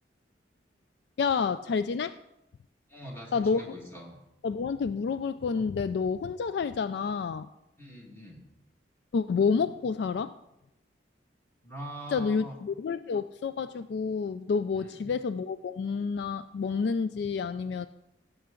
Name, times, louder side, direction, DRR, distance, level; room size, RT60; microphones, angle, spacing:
voice 1, 1.2-2.1 3.3-3.6 4.4-7.5 9.1-10.3 12.1-17.9, left 5 dB, 65° left, 13 dB, 0.3 m, -29 dB
voice 2, 2.9-4.2 7.8-8.4 11.6-12.6 14.8-15.1, right 1 dB, 15° left, -1 dB, 2.0 m, -43 dB
17.0 x 6.9 x 3.8 m, 0.87 s
head